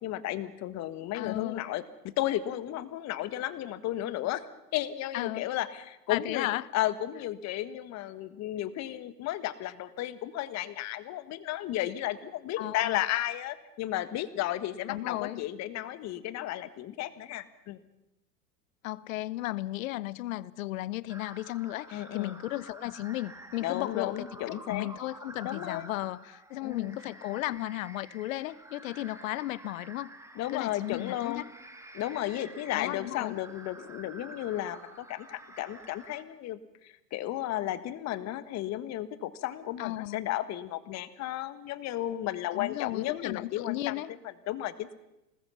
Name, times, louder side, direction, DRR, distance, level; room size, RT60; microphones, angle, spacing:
voice 1, 0.0-1.8 2.2-4.5 4.7-17.8 21.9-22.3 23.6-24.9 25.4-25.9 26.6-27.0 30.3-31.4 31.9-43.9 44.5-44.9, left 13 dB, 35° left, 14 dB, 1.5 m, -34 dB
voice 2, 1.1-1.7 5.1-5.4 6.1-6.6 12.6-13.0 14.9-15.4 18.8-30.1 30.5-31.5 32.7-33.4 39.8-40.2 42.5-44.1, left 17 dB, 55° left, 21 dB, 0.9 m, -35 dB
sound 1, 21.1-36.2, right 2 dB, 5° right, 1.9 m, -50 dB
27.0 x 20.0 x 5.7 m, 0.90 s
hypercardioid pair, 105°, 49 cm